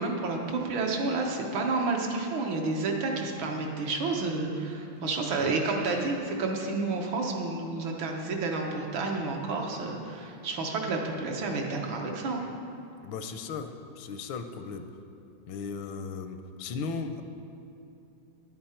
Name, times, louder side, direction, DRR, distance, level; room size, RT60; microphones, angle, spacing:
voice 1, 0.0-12.4, right 3 dB, 85° right, 0 dB, 1.8 m, -30 dB
voice 2, 13.0-14.9 15.5-17.2, left 5 dB, 80° left, 8 dB, 1.4 m, -36 dB
10.5 x 8.7 x 4.3 m, 2.9 s
omnidirectional pair, 2.2 m